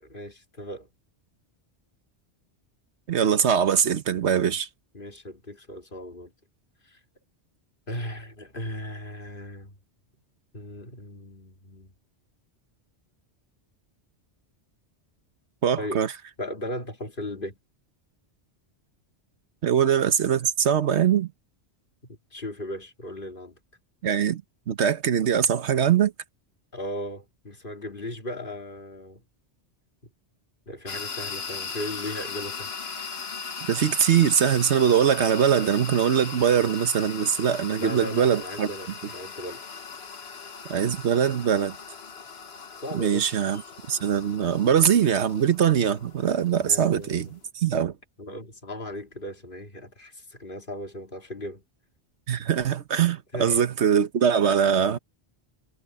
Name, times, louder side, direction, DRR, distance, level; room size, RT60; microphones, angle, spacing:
voice 1, 0.1-0.9 4.9-6.3 6.8-7.0 7.9-9.8 10.5-11.9 15.8-16.1 16.4-17.6 22.3-23.6 26.7-29.2 30.7-32.7 37.8-39.6 42.8-43.3 46.5-47.4 48.2-51.6 53.3-53.6, left 1 dB, 50° left, 2.8 m, -37 dB
voice 2, 3.1-4.7 15.6-16.1 19.6-21.3 24.0-24.4 24.7-26.1 33.7-38.7 40.7-41.7 42.9-43.6 43.9-47.9 52.3-55.0, right 8 dB, 80° right, 1.3 m, -22 dB
sound 1, 30.9-47.5, left 5 dB, 65° left, 1.5 m, -39 dB
omnidirectional pair, 1.1 m